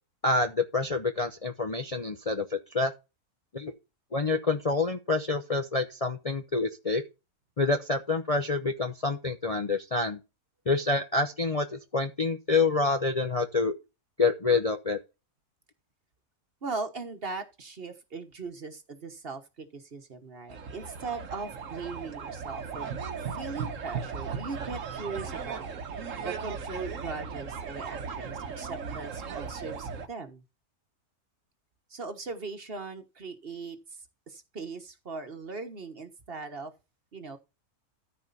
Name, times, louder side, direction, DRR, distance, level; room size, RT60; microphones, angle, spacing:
voice 1, 0.2-2.9 3.5-3.7 4.1-7.0 7.6-10.2 10.7-13.7 14.2-15.0, left 3 dB, 30° left, 0.7 m, -27 dB
voice 2, 16.6-22.9 23.3-25.8 26.2-30.4 31.9-33.8 34.3-36.7 37.1-37.4, right 4 dB, 40° right, 1.3 m, -39 dB
sound 1, 20.5-30.1, right 6 dB, 60° right, 1.4 m, -37 dB
13.5 x 4.9 x 4.1 m
omnidirectional pair, 1.6 m